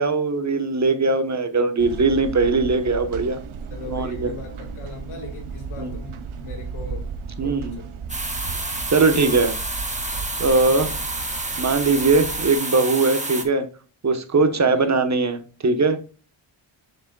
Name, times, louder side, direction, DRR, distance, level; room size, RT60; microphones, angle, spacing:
voice 1, 0.0-3.4 3.9-4.3 5.8-5.9 7.4-7.8 8.9-9.5 10.1-10.9 11.6-13.6 14.0-16.0, right 3 dB, 35° right, 8 dB, 1.2 m, -20 dB
sound 1, 1.8-12.5, right 5 dB, 80° right, 0.9 m, -35 dB
voice 2, 3.7-7.1 7.4-7.9 9.0-9.3 10.8-11.0 14.5-15.0, left 3 dB, 90° left, 3 dB, 2.1 m, -39 dB
sound 2, 8.1-13.4, right 2 dB, 15° right, 1.4 m, -29 dB
7.3 x 6.7 x 2.3 m, 0.37 s
cardioid pair, 70°, 49 cm